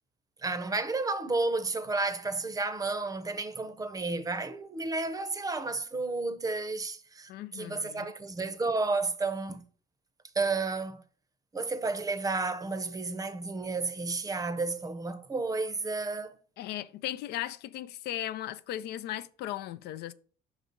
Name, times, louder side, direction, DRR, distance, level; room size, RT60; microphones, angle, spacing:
voice 1, 0.4-9.6 10.4-11.0 11.5-16.4, right 3 dB, 20° right, 0.7 m, -32 dB
voice 2, 7.3-8.1 16.6-20.1, left 13 dB, 75° left, 0.4 m, -37 dB
6.0 x 4.0 x 5.1 m
cardioid pair, 110°, 17 cm